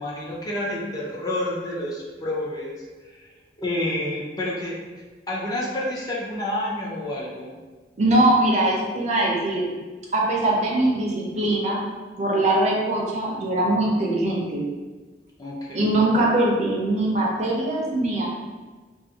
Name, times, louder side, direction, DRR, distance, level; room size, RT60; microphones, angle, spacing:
voice 1, 0.0-3.3 3.6-4.8 5.3-7.6 15.4-15.9, left 1 dB, 20° left, -5 dB, 0.4 m, -29 dB
voice 2, 8.0-9.7 10.1-11.8 12.2-14.7 15.7-18.3, right 1 dB, 40° right, -3 dB, 0.5 m, -22 dB
2.5 x 2.4 x 2.7 m, 1.3 s
head